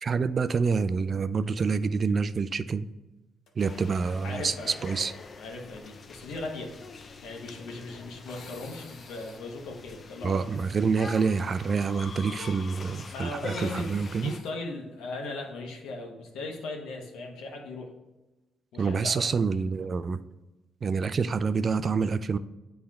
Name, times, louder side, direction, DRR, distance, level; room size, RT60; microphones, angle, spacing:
voice 1, 0.0-2.9 3.6-5.1 10.2-14.3 18.8-20.2 20.8-22.4, right 5 dB, 40° right, 13 dB, 0.3 m, -27 dB
sound 1, 1.6-1.9 2.2-2.3 3.5-3.7 6.7-15.5, left 4 dB, 70° left, 0.9 m, -55 dB
sound 2, 3.6-14.4, left 4 dB, 45° left, 0.5 m, -45 dB
voice 2, 4.2-5.0 5.4-6.7 7.2-10.4 13.1-17.9 18.7-19.2, left 2 dB, 90° left, 1 dB, 1.2 m, -38 dB
7.7 x 3.4 x 4.2 m, 1.1 s
cardioid pair, 90°, 0 cm